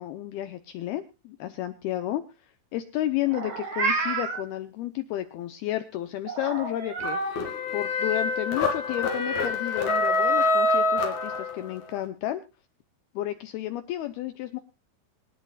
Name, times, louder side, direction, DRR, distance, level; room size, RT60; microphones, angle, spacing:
voice 1, 0.0-12.4 13.2-14.6, left 14 dB, 85° left, 9 dB, 2.2 m, -32 dB
Meow, 3.3-4.4 6.3-7.3, right 4 dB, 40° right, 2.8 m, -29 dB
sound 1, 7.0-11.8, left 3 dB, 45° left, 3.0 m, -25 dB
25.5 x 10.5 x 2.4 m, 0.27 s
omnidirectional pair, 5.6 m